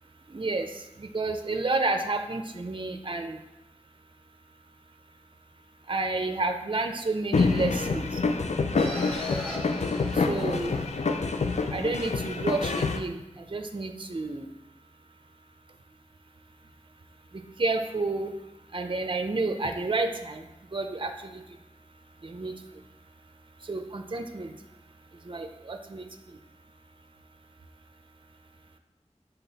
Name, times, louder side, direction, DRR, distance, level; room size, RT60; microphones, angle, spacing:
voice 1, 0.3-0.7 1.0-3.4 5.9-8.1 10.2-10.8 11.7-13.2 13.5-14.5 17.6-18.3 18.7-20.4 20.7-21.3 22.2-22.5 23.7-24.5 25.3-26.1, right 3 dB, 45° right, 6 dB, 0.5 m, -30 dB
sound 1, 7.3-13.0, left 4 dB, 75° left, 0.4 m, -27 dB
sound 2, 8.8-11.3, left 2 dB, 10° left, 1.6 m, -38 dB
5.8 x 3.9 x 4.0 m, 0.93 s
wide cardioid pair, 45°, 12 cm